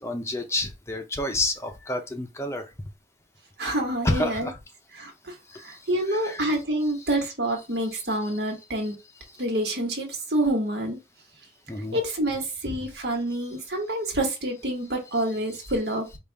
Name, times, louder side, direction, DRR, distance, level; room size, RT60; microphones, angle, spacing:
voice 1, 0.0-2.6 4.0-4.6 5.5-6.5 11.7-12.0 12.7-12.8, left 1 dB, 15° left, 0.6 m, -29 dB
voice 2, 3.6-4.5 5.0-5.3 5.6-9.0 9.4-11.0 11.9-16.0, right 1 dB, 75° right, 1.5 m, -27 dB
5.2 x 2.4 x 3.3 m
head